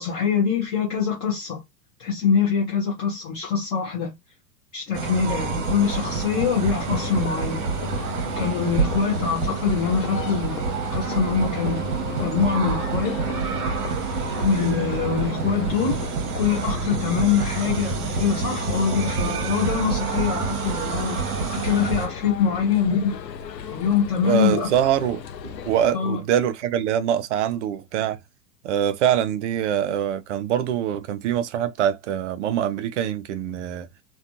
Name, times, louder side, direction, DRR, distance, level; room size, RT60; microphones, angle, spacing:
voice 1, 0.0-1.6 2.0-4.1 4.7-7.6 8.4-10.6 10.9-11.8 12.2-13.2 14.4-21.2 21.5-23.2 23.7-24.7 25.9-26.2, left 6 dB, 15° left, 0.3 m, -24 dB
sound 1, 4.9-22.1, right 5 dB, 65° right, 0.9 m, -27 dB
sound 2, 6.9-25.9, left 7 dB, 85° left, 0.6 m, -37 dB
voice 2, 24.2-28.2 28.6-33.9, right 10 dB, 50° right, 0.5 m, -24 dB
2.6 x 2.2 x 2.4 m
hypercardioid pair, 105°, 49 cm